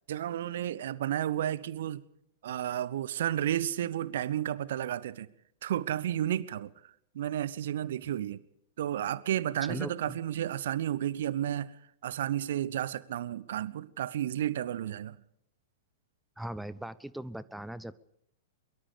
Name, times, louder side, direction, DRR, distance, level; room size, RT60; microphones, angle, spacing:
voice 1, 0.1-2.0 2.4-5.3 5.6-8.4 8.8-15.2, right 11 dB, 60° right, 1.0 m, -32 dB
voice 2, 9.7-10.2 16.4-18.0, right 1 dB, 5° right, 0.8 m, -39 dB
23.0 x 23.0 x 5.1 m
figure-of-eight pair, 100°, 0 cm